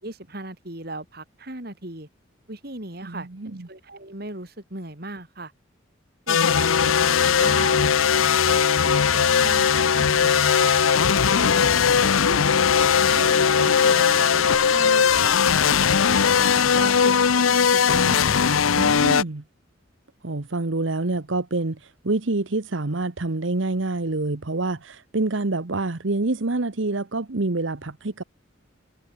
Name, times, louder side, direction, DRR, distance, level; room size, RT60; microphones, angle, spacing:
voice 1, 0.0-2.1 2.5-3.3 3.6-5.5 6.3-7.8 8.5-9.7 9.9-10.7 11.3-12.6 13.1-18.6, right 2 dB, 50° right, 3.5 m, -37 dB
voice 2, 3.0-3.7 11.4-11.7 18.8-19.4 20.2-28.2, right 2 dB, 70° right, 1.1 m, -27 dB
sound 1, 6.3-19.2, left 7 dB, 90° left, 0.7 m, -19 dB
head